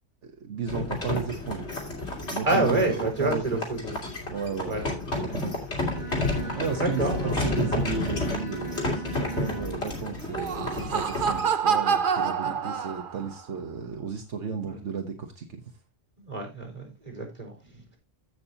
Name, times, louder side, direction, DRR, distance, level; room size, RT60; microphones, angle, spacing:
voice 1, 0.2-2.0 2.2-3.4 4.3-5.0 5.2-6.2 6.5-15.7, right 6 dB, 75° right, 1.5 m, -34 dB
sound 1, 0.7-11.4, left 2 dB, 65° left, 3.3 m, -31 dB
voice 2, 2.5-4.0 4.6-4.8 6.4-7.4 12.4-12.5 14.6-14.8 16.2-18.0, right 2 dB, 30° right, 4.1 m, -28 dB
Bowed string instrument, 5.7-9.9, right 5 dB, 25° left, 5.7 m, -40 dB
Laughter, 10.2-13.4, right 6 dB, 50° right, 0.9 m, -27 dB
15.0 x 6.1 x 2.8 m
omnidirectional pair, 1.2 m